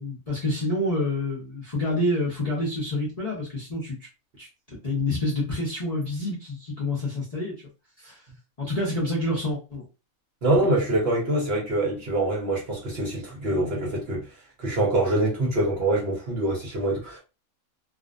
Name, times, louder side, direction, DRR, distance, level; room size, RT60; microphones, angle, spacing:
voice 1, 0.0-4.0 4.4-4.5 4.8-7.5 8.0-8.2 8.6-9.8, left 1 dB, 35° left, 0.7 m, -27 dB
voice 2, 10.4-14.3 14.6-17.2, right 2 dB, 55° right, 0.9 m, -25 dB
2.5 x 2.1 x 2.4 m
omnidirectional pair, 1.5 m